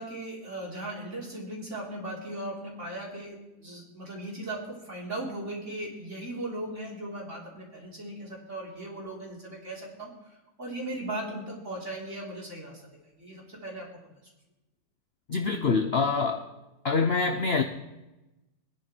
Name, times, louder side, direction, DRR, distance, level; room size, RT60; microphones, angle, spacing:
voice 1, 0.0-12.8 13.1-13.9, right 1 dB, 35° right, -3 dB, 4.0 m, -38 dB
voice 2, 15.3-16.5 16.8-17.6, left 4 dB, 50° left, 5 dB, 0.7 m, -25 dB
22.5 x 10.5 x 4.5 m, 1.0 s
omnidirectional pair, 2.1 m